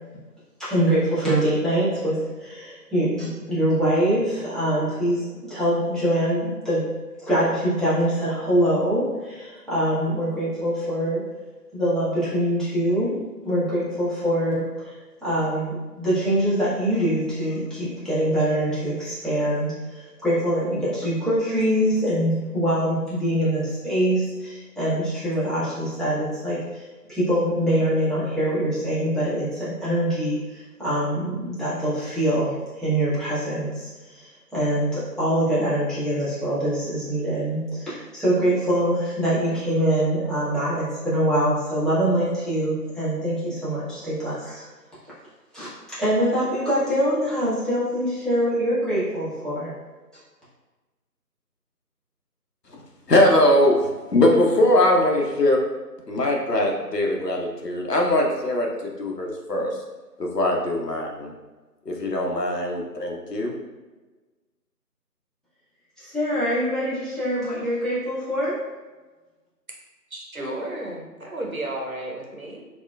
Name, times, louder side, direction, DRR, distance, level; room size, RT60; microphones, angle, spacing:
voice 1, 0.6-6.9 7.2-11.2 11.7-13.2 13.4-14.9 15.2-26.8 27.1-44.7 45.5-45.7 46.0-49.7 66.0-68.5, right 1 dB, ahead, -13 dB, 0.7 m, -24 dB
voice 2, 53.1-55.6 56.1-59.8 60.2-61.3 61.9-63.5, left 1 dB, 75° left, 0 dB, 0.8 m, -21 dB
voice 3, 70.1-72.7, right 1 dB, 55° right, -2 dB, 0.7 m, -33 dB
4.3 x 2.1 x 2.2 m, 1.2 s
figure-of-eight pair, 180°, 49 cm